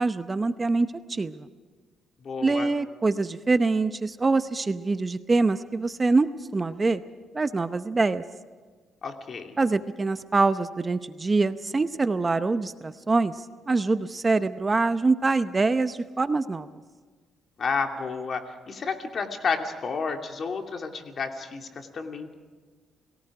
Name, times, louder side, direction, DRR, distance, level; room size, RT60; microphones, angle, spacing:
voice 1, 0.0-1.5 2.4-7.0 7.3-8.2 9.6-16.7, right 3 dB, 25° right, 11 dB, 0.8 m, -24 dB
voice 2, 2.2-2.7 9.0-9.6 17.6-22.3, left 5 dB, 50° left, 4 dB, 2.7 m, -31 dB
29.5 x 18.5 x 4.9 m, 1.5 s
cardioid pair, 90°, 0 cm